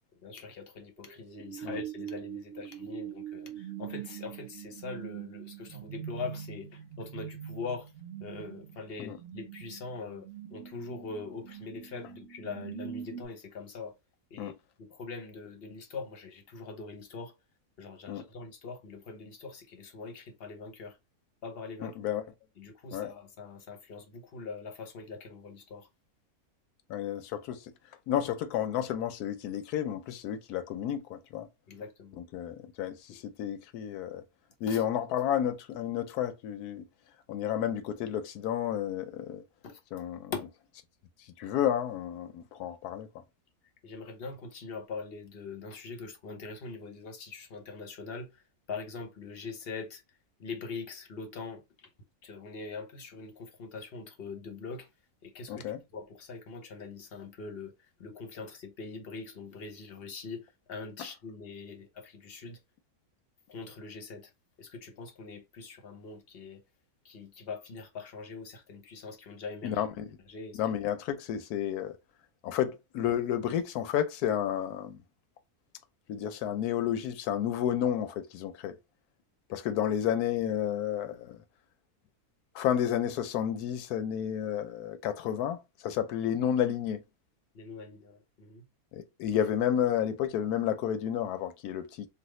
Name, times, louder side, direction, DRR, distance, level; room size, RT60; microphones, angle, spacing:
voice 1, 0.2-7.9 8.2-14.0 14.3-14.5 14.8-17.3 17.8-21.0 21.4-22.0 22.6-25.9 31.7-32.2 34.7-34.8 39.6-40.0 40.3-40.5 43.8-50.0 50.4-51.9 52.2-54.9 55.2-62.6 63.5-64.3 64.6-66.6 67.0-69.8 70.3-70.6 87.5-88.6, left 4 dB, 50° left, 0.8 m, -42 dB
sound 1, 1.0-13.3, right 10 dB, 65° right, 0.8 m, -43 dB
voice 2, 21.8-22.2 22.9-23.1 26.9-27.7 28.1-31.5 32.2-34.2 34.6-36.9 37.3-39.4 39.9-40.3 41.2-43.1 55.5-55.8 69.6-70.1 70.5-72.0 72.4-75.0 76.1-78.8 79.5-81.4 82.5-87.0 88.9-92.1, left 10 dB, 85° left, 1.1 m, -31 dB
3.4 x 2.3 x 3.1 m
omnidirectional pair, 1.6 m